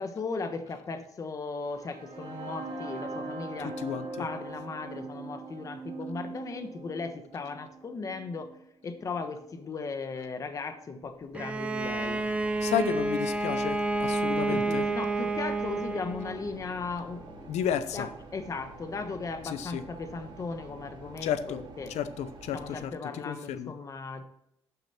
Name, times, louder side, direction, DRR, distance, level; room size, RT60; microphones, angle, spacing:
voice 1, 0.0-3.8 4.2-8.5 8.8-12.2 14.5-17.5 17.9-21.9 22.5-24.2, left 4 dB, 30° left, 1.1 m, -37 dB
sound 1, 1.6-9.5, right 3 dB, 75° right, 3.3 m, -41 dB
voice 2, 3.8-4.2 12.6-14.8 17.5-18.1 19.4-19.8 21.2-21.6 21.9-23.7, left 9 dB, 80° left, 0.9 m, -32 dB
Bowed string instrument, 11.3-16.5, right 2 dB, 10° right, 0.7 m, -29 dB
sound 2, 11.8-22.9, right 3 dB, 45° right, 2.1 m, -48 dB
12.0 x 6.9 x 4.3 m
cardioid pair, 170°, 11 cm